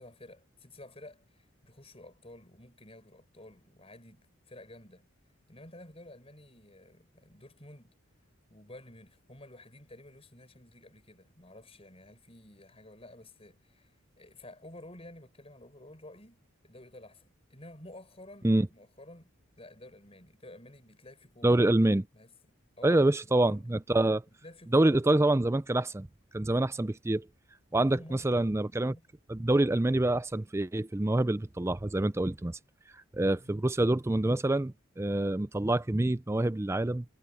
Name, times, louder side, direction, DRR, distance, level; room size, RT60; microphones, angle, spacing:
voice 1, 0.0-5.0 5.5-8.0 8.5-21.6 22.1-23.8 24.4-25.2 27.7-28.4 28.7-29.0 33.4-33.7, left 1 dB, 30° left, 7.1 m, -52 dB
voice 2, 21.4-22.1 22.8-24.2 24.7-26.1 26.3-27.2 27.7-29.0 29.3-32.6 33.1-37.0, right 1 dB, 15° right, 0.4 m, -26 dB
head